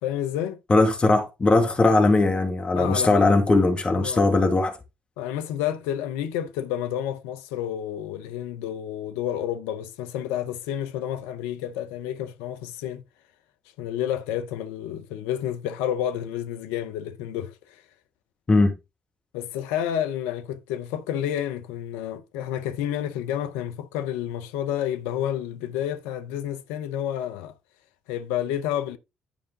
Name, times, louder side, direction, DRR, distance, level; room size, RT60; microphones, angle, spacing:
voice 1, 0.0-0.6 2.7-3.4 3.9-4.2 5.2-13.0 13.8-17.8 19.3-27.5 28.1-29.0, left 10 dB, 80° left, 0.7 m, -30 dB
voice 2, 0.7-4.8 18.5-18.7, left 2 dB, 35° left, 1.9 m, -19 dB
10.5 x 5.0 x 3.7 m
hypercardioid pair, 50°, 3 cm